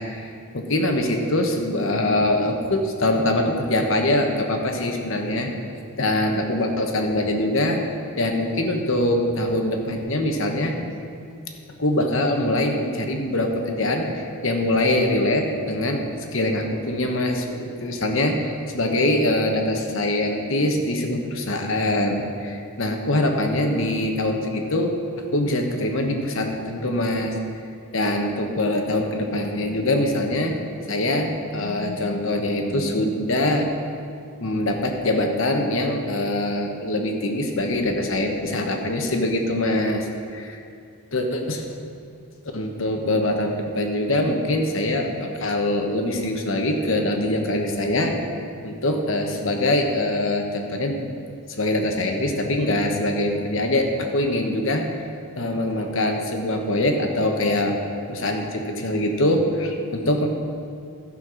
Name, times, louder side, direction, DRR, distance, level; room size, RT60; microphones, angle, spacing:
voice 1, 0.0-5.5 6.0-7.8 8.2-10.7 11.8-16.0 16.3-24.9 25.3-27.3 27.9-33.7 34.4-40.6 41.1-41.6 42.5-48.1 48.6-51.0 51.6-55.0 55.4-57.8 58.1-60.3, left 1 dB, 60° left, 3 dB, 1.2 m, -23 dB
14.0 x 5.7 x 6.3 m, 2.4 s
head